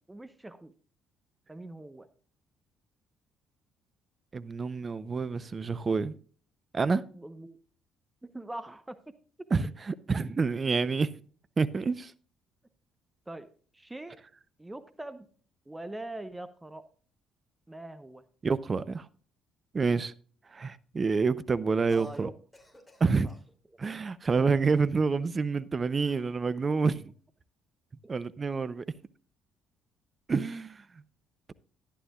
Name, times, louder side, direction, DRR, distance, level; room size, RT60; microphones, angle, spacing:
voice 1, 0.1-0.7 1.5-2.1 7.1-7.6 8.2-9.0 9.4-9.5 13.3-13.5 13.7-14.2 14.6-15.3 15.7-16.8 17.7-18.2 21.9-22.3 23.2-23.3, right 1 dB, 15° right, 0.9 m, -42 dB
voice 2, 4.3-6.1 6.7-7.0 9.5-11.1 11.6-12.1 18.4-19.0 19.7-20.1 20.5-22.3 23.0-23.3 23.8-27.1 28.1-28.8 30.3-30.8, right 4 dB, 35° right, 0.6 m, -28 dB
Cough, 21.9-22.3 22.5-23.5 24.2-24.9 26.0-26.4, left 1 dB, 10° left, 2.9 m, -57 dB
11.5 x 11.0 x 2.3 m
hypercardioid pair, 50°, 0 cm